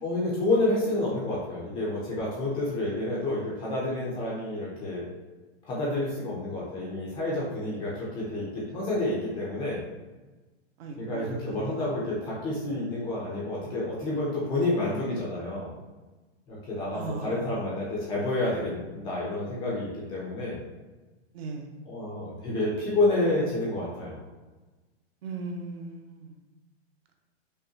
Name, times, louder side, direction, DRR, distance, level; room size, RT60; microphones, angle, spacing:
voice 1, 0.0-5.1 5.6-9.8 11.0-15.7 16.5-20.6 21.9-24.2, left 2 dB, 15° left, -5 dB, 0.4 m, -29 dB
voice 2, 10.8-12.0 16.9-17.7 21.3-21.8 25.2-26.4, right 3 dB, 60° right, 3 dB, 0.7 m, -38 dB
5.2 x 2.1 x 2.7 m, 1.2 s
supercardioid pair, 160°, 35 cm